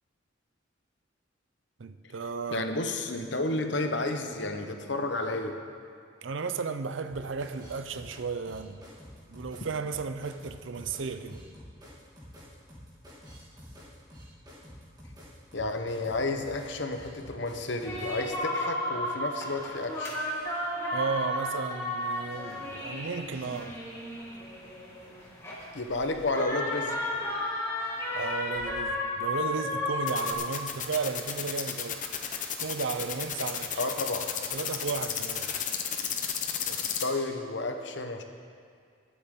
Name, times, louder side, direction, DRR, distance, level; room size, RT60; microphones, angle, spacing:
voice 1, 1.8-2.7 6.2-8.8 9.3-11.4 20.9-23.8 28.1-32.0 32.6-33.9 34.5-35.5, right 4 dB, 75° right, 10 dB, 0.6 m, -34 dB
voice 2, 2.5-5.6 15.5-20.1 25.7-27.0 33.8-34.3 36.7-38.2, left 2 dB, 65° left, 5 dB, 1.0 m, -31 dB
sound 1, 7.0-18.2, equal, 20° right, 3.2 m, -49 dB
sound 2, 17.8-30.3, left 1 dB, 15° left, 1.8 m, -33 dB
sound 3, 30.1-37.0, left 8 dB, 40° left, 0.8 m, -32 dB
21.5 x 8.3 x 3.8 m, 2.2 s
head